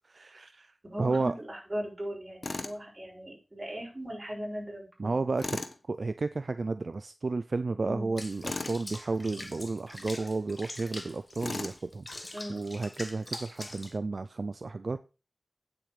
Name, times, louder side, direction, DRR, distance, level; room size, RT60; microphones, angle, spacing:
voice 1, 0.1-0.7 1.0-1.3 5.0-5.6 5.9-15.0, right 3 dB, 65° right, 0.5 m, -32 dB
voice 2, 0.8-5.2 7.8-8.1 12.3-12.9, equal, 30° right, 7.1 m, -39 dB
Tools, 2.4-2.8 5.4-5.8 8.4-8.8 11.4-11.8, left 3 dB, 60° left, 1.2 m, -36 dB
Water / Bathtub (filling or washing), 8.2-14.0, left 1 dB, 30° left, 1.6 m, -43 dB
9.2 x 7.7 x 4.9 m
wide cardioid pair, 65°, 0 cm